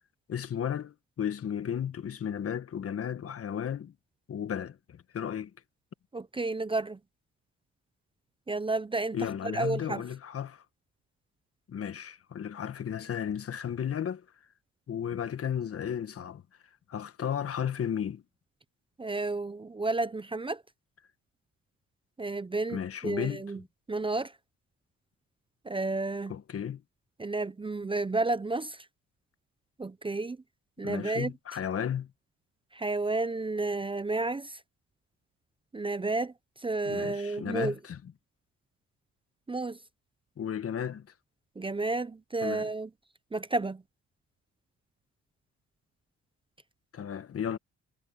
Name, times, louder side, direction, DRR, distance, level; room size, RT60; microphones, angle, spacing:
voice 1, 0.3-3.9 4.3-5.5 9.1-10.6 11.7-14.2 14.9-16.4 16.9-18.2 22.7-23.4 26.3-26.8 30.8-32.1 36.8-38.0 40.4-41.1 42.4-42.7 46.9-47.6, left 8 dB, 50° left, 1.4 m, -34 dB
voice 2, 6.1-7.0 8.5-9.2 9.4-10.0 19.0-20.6 22.2-23.6 23.9-24.3 25.6-26.3 27.2-28.9 29.8-30.4 30.8-31.3 32.7-34.6 35.7-37.7 39.5-39.8 41.6-42.9 43.3-43.8, right 3 dB, 15° right, 0.7 m, -31 dB
cardioid pair, 90°, 30 cm